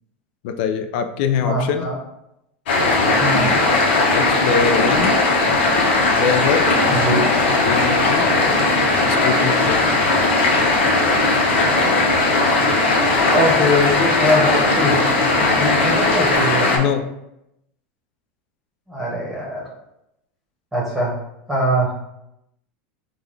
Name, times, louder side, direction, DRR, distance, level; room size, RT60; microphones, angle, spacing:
voice 1, 0.4-1.9 4.1-5.1 6.1-6.7 7.6-8.3 9.2-9.8 16.7-17.0, left 7 dB, 65° left, 7 dB, 0.3 m, -23 dB
voice 2, 1.4-1.9 3.1-3.6 6.9-7.2 13.3-16.7 18.9-19.6 20.7-21.1 21.5-21.9, left 1 dB, 5° right, -5 dB, 1.0 m, -22 dB
sound 1, 2.7-16.8, left 2 dB, 85° left, 0.8 m, -17 dB
3.7 x 2.3 x 3.2 m, 0.84 s
supercardioid pair, 125°, 6 cm